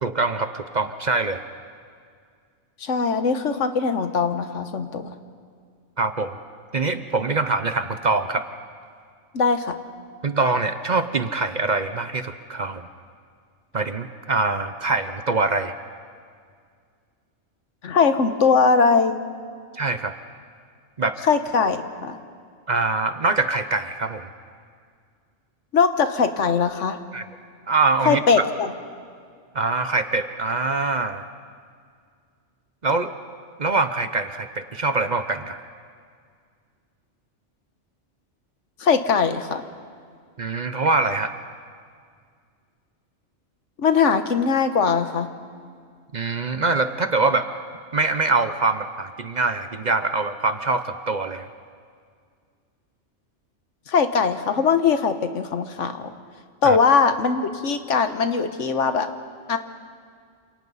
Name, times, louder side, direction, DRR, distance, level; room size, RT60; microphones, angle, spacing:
voice 1, 0.0-1.4 6.0-6.4 6.7-8.5 10.2-12.9 13.7-15.7 19.7-20.1 21.0-21.2 22.7-24.3 27.1-27.3 27.7-28.2 29.5-31.3 32.8-33.1 33.6-35.6 40.4-41.3 46.1-47.5 47.9-51.5 56.6-56.8, right 3 dB, 40° right, 9 dB, 0.8 m, -24 dB
voice 2, 2.8-5.1 9.3-9.8 17.8-19.2 21.2-22.2 25.7-27.0 28.0-28.7 38.8-39.6 43.8-45.3 53.9-56.1 56.6-59.1 59.5-59.6, left 5 dB, 75° left, 8 dB, 1.4 m, -21 dB
29.0 x 27.5 x 4.1 m, 2.1 s
omnidirectional pair, 1.3 m